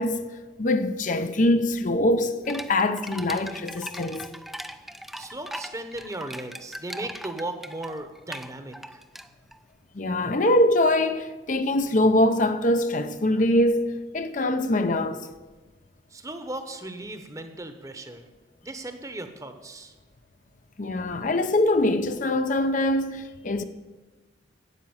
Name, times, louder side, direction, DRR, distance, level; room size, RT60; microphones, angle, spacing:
voice 1, 0.0-4.3 9.9-15.3 20.8-23.6, left 1 dB, 45° left, 0.7 m, -23 dB
sound 1, 2.4-9.6, equal, ahead, 0.5 m, -39 dB
voice 2, 5.1-9.0 16.1-18.2 18.6-19.9, right 1 dB, 20° right, 1.0 m, -37 dB
12.5 x 8.5 x 7.2 m
head